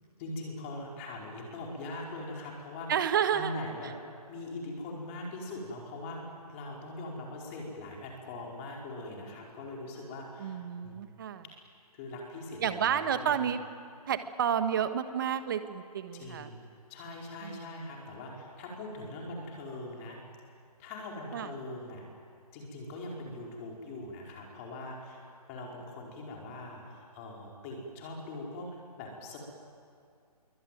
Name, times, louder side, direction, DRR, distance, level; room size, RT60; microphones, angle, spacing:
voice 1, 0.2-2.9 3.3-4.0 4.3-11.0 11.9-13.5 16.1-16.6 16.9-20.2 20.8-22.0 22.5-25.2 25.5-29.4, left 2 dB, 20° left, -1 dB, 4.8 m, -41 dB
voice 2, 2.9-3.5 10.4-11.4 12.6-13.6 14.1-16.5 17.4-17.6 21.3-21.5, right 8 dB, 35° right, 10 dB, 1.4 m, -30 dB
26.0 x 23.5 x 9.3 m, 2.3 s
hypercardioid pair, 165°, 20 cm